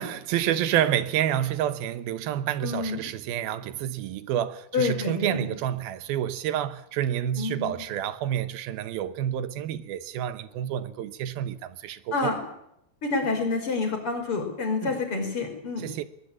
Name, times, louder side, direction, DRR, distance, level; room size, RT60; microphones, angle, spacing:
voice 1, 0.0-12.3 14.8-15.0 15.8-16.0, right 11 dB, 80° right, 2.9 m, -29 dB
voice 2, 2.6-3.1 4.7-5.5 7.4-7.8 12.1-12.4 13.0-15.9, left 4 dB, 35° left, 5.8 m, -28 dB
22.0 x 20.0 x 8.9 m
omnidirectional pair, 4.3 m